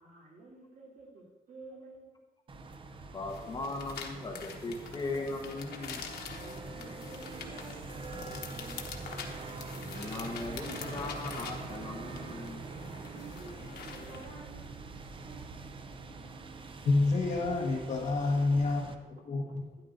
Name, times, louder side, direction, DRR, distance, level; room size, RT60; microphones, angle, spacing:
voice 1, 0.0-2.2 6.4-8.9 13.0-15.7 19.1-19.6, right 3 dB, 60° right, -3 dB, 2.8 m, -52 dB
sound 1, 2.5-18.9, right 3 dB, 35° right, 0.6 m, -44 dB
voice 2, 3.1-6.0 9.8-12.6, left 2 dB, 30° left, 0 dB, 1.1 m, -38 dB
sound 2, 3.3-14.2, left 6 dB, 85° left, 1.1 m, -45 dB
voice 3, 16.8-18.8 19.3-19.6, left 3 dB, 50° left, 0 dB, 1.5 m, -28 dB
12.0 x 10.0 x 2.6 m, 1.2 s
wide cardioid pair, 165°, 16 cm